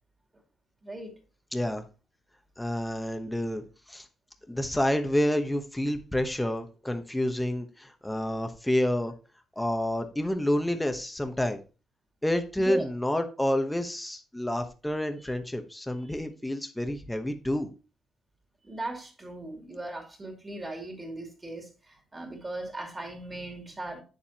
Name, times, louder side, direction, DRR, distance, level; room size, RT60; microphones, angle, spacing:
voice 1, 0.8-1.1 12.6-12.9 18.6-24.0, right 2 dB, 20° right, 2.6 m, -38 dB
voice 2, 1.5-1.8 2.6-4.1 4.5-9.1 9.6-11.6 12.2-17.7, left 1 dB, 5° left, 1.0 m, -29 dB
9.4 x 7.1 x 2.9 m
cardioid pair, 135°, 0 cm